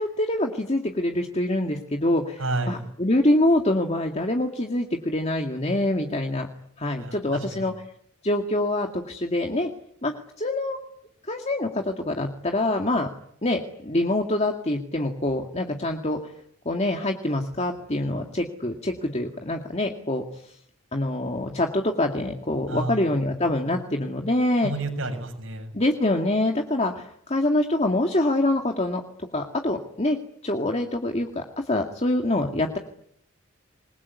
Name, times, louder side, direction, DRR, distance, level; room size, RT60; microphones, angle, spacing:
voice 1, 0.0-2.4 2.7-6.5 6.8-7.7 8.2-9.7 10.0-10.8 11.3-13.1 13.4-16.3 16.7-20.5 20.9-24.7 25.7-29.0 29.3-30.2 30.4-32.8, left 1 dB, 30° left, 3 dB, 2.2 m, -25 dB
voice 2, 2.4-2.9 7.0-7.7 22.7-23.0 24.6-25.8, right 2 dB, 70° right, 6 dB, 7.3 m, -30 dB
26.5 x 21.5 x 9.7 m, 0.70 s
head